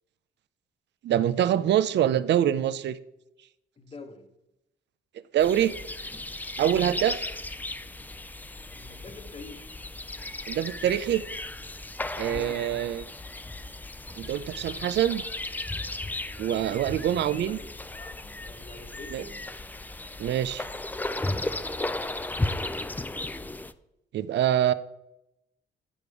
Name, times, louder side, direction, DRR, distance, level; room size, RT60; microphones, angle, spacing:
voice 1, 1.0-3.0 5.3-5.7 6.6-7.2 10.5-11.2 12.2-13.1 14.2-15.2 16.4-17.6 19.1-19.2 20.2-20.6 24.1-24.7, right 11 dB, 60° right, 16 dB, 0.5 m, -25 dB
voice 2, 3.8-4.3 8.7-9.7 12.1-12.7 16.6-17.7 17.9-19.4, left 3 dB, 30° left, 6 dB, 1.1 m, -46 dB
sound 1, 5.4-23.7, left 2 dB, 10° left, 0.4 m, -35 dB
10.0 x 5.2 x 4.7 m, 0.87 s
cardioid pair, 90°, 20 cm